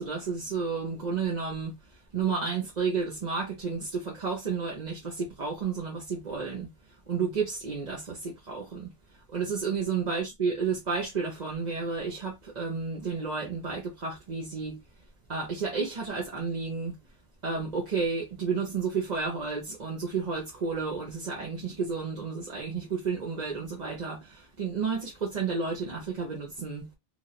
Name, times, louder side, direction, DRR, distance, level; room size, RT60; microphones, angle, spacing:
voice 1, 0.0-14.8 15.3-17.0 17.4-26.9, right 5 dB, 45° right, 1.0 m, -32 dB
3.0 x 2.6 x 4.0 m
omnidirectional pair, 1.1 m